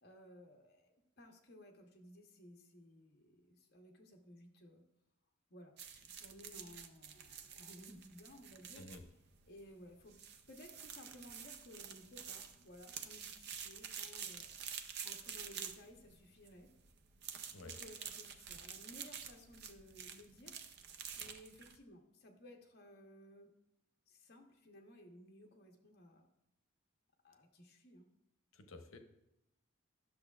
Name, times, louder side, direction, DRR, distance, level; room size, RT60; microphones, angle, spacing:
voice 1, 0.0-4.8 5.5-8.9 9.4-10.2 10.5-14.5 15.0-16.7 17.6-20.6 21.2-23.5 24.1-26.3 27.2-28.1, left 1 dB, 50° left, 2 dB, 0.9 m, -58 dB
sound 1, 5.8-21.8, right 7 dB, 50° right, 0.5 m, -49 dB
voice 2, 28.5-29.0, left 2 dB, 90° left, 7 dB, 0.8 m, -52 dB
10.5 x 6.5 x 2.4 m, 0.85 s
head